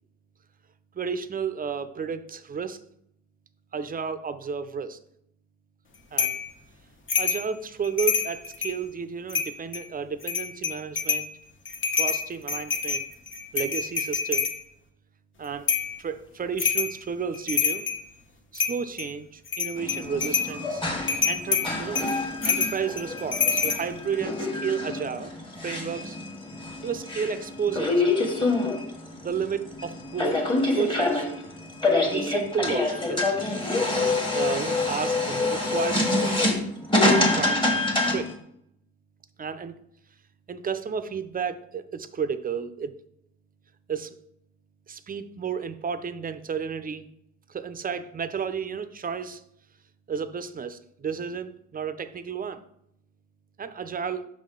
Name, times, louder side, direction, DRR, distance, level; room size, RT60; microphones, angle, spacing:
voice 1, 0.9-2.8 3.7-5.0 6.1-6.4 7.2-11.3 11.9-13.1 13.5-14.5 15.4-15.7 16.0-17.9 18.5-20.8 21.3-25.3 25.6-26.2 26.8-28.0 29.2-31.3 32.0-33.3 34.3-36.8 37.0-38.3 39.4-39.8 40.5-43.0 43.9-44.2 44.9-47.1 47.5-49.4 50.1-52.6 53.6-54.2, right 6 dB, 30° right, 11 dB, 0.5 m, -32 dB
sound 1, 6.2-6.4 7.1-7.5 7.8-8.8 9.3-9.8 10.2-11.3 11.7-14.6 15.7-15.9 16.6-17.0 17.3-18.0 18.5-19.1 19.5-20.5 21.1-23.8, left 5 dB, 40° left, 1.0 m, -26 dB
sound 2, 19.8-38.3, left 2 dB, 15° left, 1.4 m, -26 dB
5.4 x 5.1 x 3.8 m, 0.74 s
cardioid pair, 90°, 30 cm